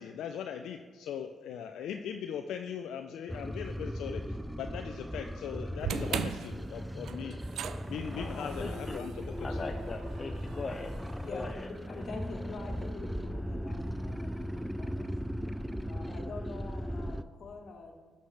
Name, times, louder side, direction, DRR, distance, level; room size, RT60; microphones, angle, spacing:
voice 1, 0.0-7.4 7.9-9.6, left 8 dB, 75° left, 5 dB, 0.4 m, -40 dB
sound 1, 3.3-17.2, equal, ahead, 0.4 m, -38 dB
sound 2, 5.8-12.1, right 7 dB, 70° right, 0.4 m, -41 dB
voice 2, 8.1-9.1 9.4-10.9 11.2-11.7, left 3 dB, 40° left, 5 dB, 0.6 m, -40 dB
voice 3, 11.2-11.6 11.9-15.1 15.8-17.9, left 4 dB, 60° left, 3 dB, 1.4 m, -45 dB
11.5 x 6.5 x 3.3 m, 1.4 s
supercardioid pair, 50°, 0 cm